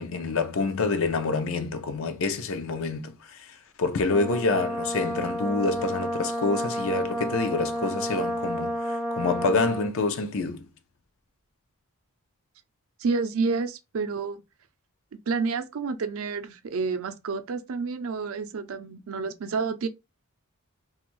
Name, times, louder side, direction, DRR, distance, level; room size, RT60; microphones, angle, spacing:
voice 1, 0.0-10.7, left 3 dB, 65° left, 0.5 m, -27 dB
Brass instrument, 4.1-9.9, equal, ahead, 0.3 m, -31 dB
voice 2, 13.0-14.4 15.3-19.9, right 4 dB, 65° right, 0.4 m, -29 dB
2.6 x 2.4 x 3.0 m
head